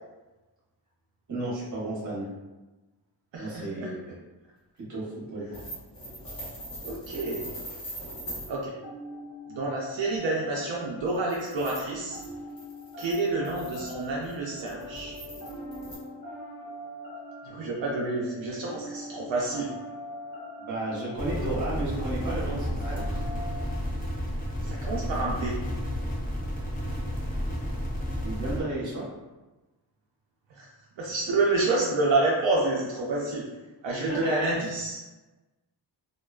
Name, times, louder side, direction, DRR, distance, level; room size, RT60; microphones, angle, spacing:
voice 1, 1.3-2.3 3.4-4.1 4.9-5.6 20.6-23.2 28.2-29.1 34.1-34.4, right 2 dB, 40° right, -6 dB, 0.9 m, -33 dB
voice 2, 3.3-3.9 6.8-7.5 8.5-8.7 9.5-12.2 13.0-15.2 17.4-19.7 24.6-25.6 30.5-30.7 31.0-33.4 33.8-35.0, right 2 dB, 80° right, -4 dB, 0.5 m, -28 dB
sound 1, 5.5-8.5 11.0-16.0, right 1 dB, 50° left, 0.9 m, -41 dB
sound 2, 8.0-23.6, equal, 75° left, 1.2 m, -42 dB
sound 3, 21.2-28.6, equal, 20° left, 0.4 m, -31 dB
2.4 x 2.2 x 2.3 m, 1.1 s
wide cardioid pair, 160°, 45 cm